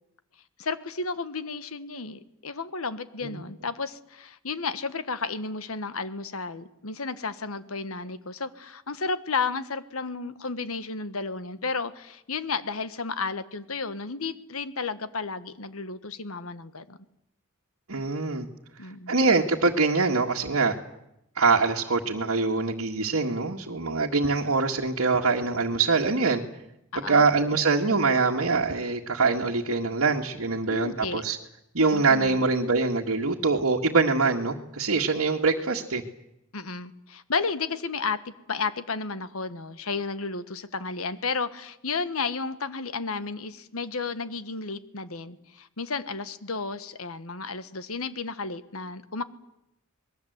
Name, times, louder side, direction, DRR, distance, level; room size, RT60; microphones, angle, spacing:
voice 1, 0.6-17.0 18.8-19.2 26.9-27.3 30.7-31.2 31.9-32.4 36.5-49.2, left 4 dB, 80° left, 13 dB, 1.4 m, -32 dB
voice 2, 17.9-18.5 19.1-20.8 21.4-26.4 27.1-31.4 31.7-36.0, right 4 dB, 75° right, -3 dB, 1.8 m, -24 dB
27.0 x 21.0 x 8.0 m, 0.82 s
head